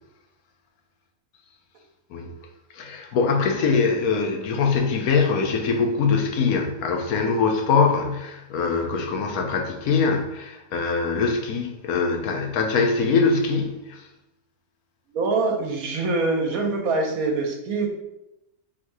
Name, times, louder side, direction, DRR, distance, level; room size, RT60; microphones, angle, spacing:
voice 1, 2.7-14.1, left 5 dB, 80° left, 3 dB, 1.1 m, -23 dB
voice 2, 15.1-17.9, right 3 dB, 75° right, 1 dB, 1.2 m, -24 dB
3.7 x 2.7 x 4.5 m, 0.91 s
omnidirectional pair, 1.5 m